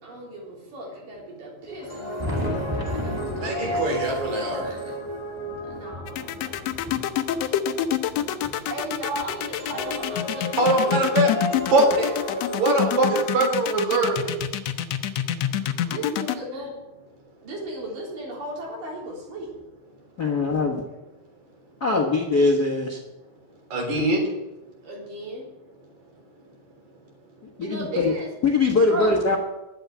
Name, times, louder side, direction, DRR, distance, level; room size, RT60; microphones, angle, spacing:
voice 1, 0.0-3.7 5.7-6.7 7.0-7.2 8.7-10.7 15.8-16.8 17.4-19.5 24.8-25.5 27.6-28.3 28.9-29.2, right 1 dB, 85° right, -3 dB, 5.4 m, -35 dB
sound 1, 1.7-6.7 9.3-13.3, left 1 dB, 25° left, 0.9 m, -33 dB
Thunder, 1.7-10.2 10.9-12.6 13.7-13.8 14.4-14.5 16.4-16.5 17.8-17.9 19.5-19.6, equal, 10° right, 1.5 m, -36 dB
voice 2, 3.4-4.7 10.6-11.3 11.7-12.1 12.6-14.4 23.7-24.2, right 2 dB, 60° right, 0 dB, 5.1 m, -22 dB
sound 2, 6.1-16.4, left 11 dB, 75° left, 1.6 m, -26 dB
voice 3, 20.2-20.8 21.8-23.0 27.6-28.1 28.4-29.4, left 3 dB, 45° left, 1 dB, 1.3 m, -21 dB
11.5 x 9.2 x 7.3 m, 0.99 s
omnidirectional pair, 3.7 m